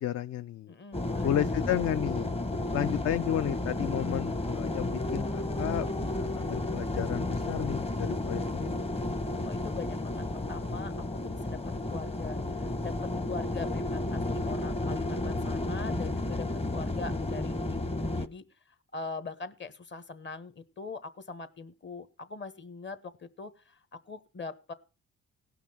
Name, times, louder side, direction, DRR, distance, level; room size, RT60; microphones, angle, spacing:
voice 1, 0.0-0.7 1.2-2.3 2.7-8.8, left 11 dB, 55° left, 13 dB, 0.5 m, -32 dB
voice 2, 0.7-1.3 9.4-11.6 11.9-24.7, left 4 dB, 40° left, 12 dB, 1.3 m, -42 dB
sound 1, 0.9-18.3, left 2 dB, 20° left, 1.0 m, -32 dB
17.5 x 5.9 x 5.8 m, 0.33 s
cardioid pair, 90°, 30 cm